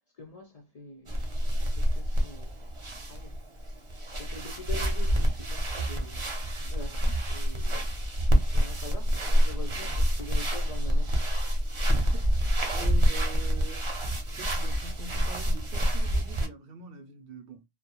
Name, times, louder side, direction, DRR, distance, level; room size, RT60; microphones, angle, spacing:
voice 1, 0.2-1.3 1.6-2.7 3.1-3.4 4.2-7.9 8.5-11.3, left 2 dB, 50° left, 0.5 m, -44 dB
sound 1, 1.1-16.5, equal, 35° right, 0.6 m, -27 dB
voice 2, 11.9-13.9 14.3-17.6, right 4 dB, 70° right, 0.7 m, -44 dB
2.2 x 2.1 x 2.9 m
omnidirectional pair, 1.0 m